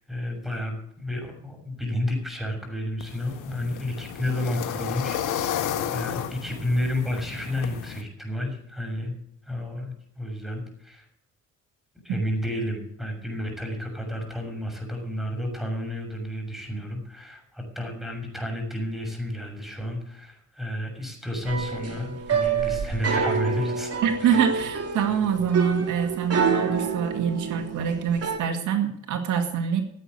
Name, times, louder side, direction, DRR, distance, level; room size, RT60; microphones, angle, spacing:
voice 1, 0.0-9.1 9.4-11.1 12.0-23.9 24.2-24.4, left 1 dB, ahead, 2 dB, 6.6 m, -31 dB
sound 1, 3.0-8.0, left 9 dB, 90° left, 1.6 m, -32 dB
sound 2, 21.5-28.4, right 5 dB, 50° right, 2.9 m, -27 dB
voice 2, 24.0-29.8, right 7 dB, 80° right, 6 dB, 2.1 m, -25 dB
16.5 x 8.4 x 8.2 m, 0.73 s
cardioid pair, 90°, 30 cm